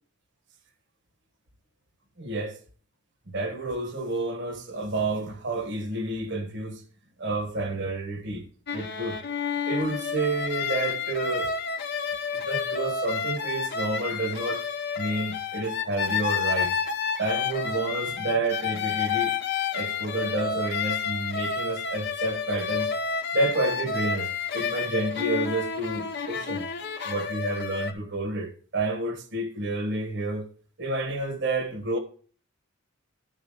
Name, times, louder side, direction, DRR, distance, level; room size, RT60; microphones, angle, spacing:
voice 1, 2.2-2.6 3.3-6.8 7.2-8.4 8.7-9.2 9.7-11.5 12.3-14.6 15.0-16.7 17.2-19.4 19.7-22.9 23.3-26.6 27.0-30.5 30.8-32.0, right 2 dB, 50° right, 1.1 m, -30 dB
sound 1, 8.7-27.9, left 6 dB, 50° left, 0.8 m, -30 dB
11.0 x 4.0 x 5.4 m
head